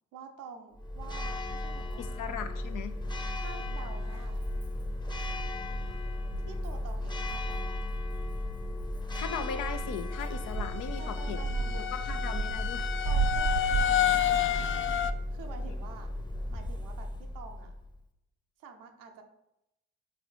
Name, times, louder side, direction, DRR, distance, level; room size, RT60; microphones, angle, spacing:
voice 1, 0.1-2.2 3.3-4.4 6.5-7.9 11.0-11.9 13.0-14.7 15.3-16.1 16.5-17.7 18.6-19.2, right 5 dB, 90° right, 4 dB, 0.8 m, -48 dB
Church bell, 0.8-18.0, left 1 dB, 15° left, 0.7 m, -35 dB
voice 2, 2.0-3.0 9.1-11.4 11.7-12.9, left 7 dB, 80° left, 9 dB, 0.7 m, -38 dB
sound 1, 3.0-3.1 3.6-4.2 4.7-13.9, right 7 dB, 60° right, 0.5 m, -36 dB
sound 2, 10.1-15.1, left 10 dB, 40° left, 0.4 m, -30 dB
5.0 x 4.0 x 4.9 m, 0.87 s
supercardioid pair, 50°, 32 cm